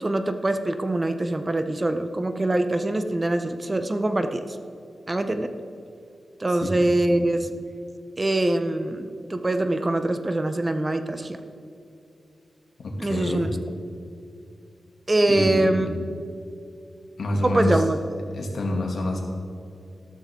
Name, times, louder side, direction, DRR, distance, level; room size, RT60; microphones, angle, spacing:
voice 1, 0.0-4.4 5.1-5.5 6.4-7.5 8.2-11.4 13.0-13.5 15.1-15.9 17.4-18.3, right 1 dB, 20° right, 8 dB, 0.6 m, -24 dB
voice 2, 6.5-6.8 7.1-7.3 12.8-13.5 15.3-15.8 17.2-17.8 18.3-19.2, left 1 dB, 70° left, 0 dB, 2.2 m, -27 dB
13.5 x 13.0 x 3.7 m, 2.6 s
wide cardioid pair, 140°, 0 cm